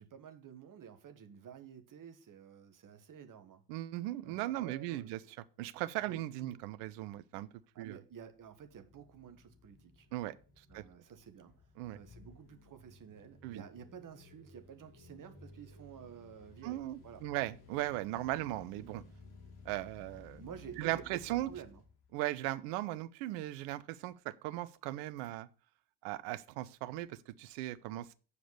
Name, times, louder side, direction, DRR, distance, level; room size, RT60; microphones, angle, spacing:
voice 1, 0.0-3.6 4.2-5.3 6.0-6.6 7.7-10.1 10.7-11.6 11.9-17.2 20.4-21.8, right 8 dB, 40° right, 1.5 m, -51 dB
voice 2, 3.7-5.2 5.6-7.5 7.8-8.0 10.1-10.3 10.7-10.8 11.8-12.0 13.4-13.6 16.6-19.0 19.6-20.4 20.8-21.5 22.1-25.5 26.0-28.1, right 16 dB, 65° right, 0.7 m, -38 dB
sound 1, 8.4-22.6, left 3 dB, 50° left, 3.0 m, -57 dB
8.2 x 5.0 x 6.9 m
figure-of-eight pair, 50°, 49 cm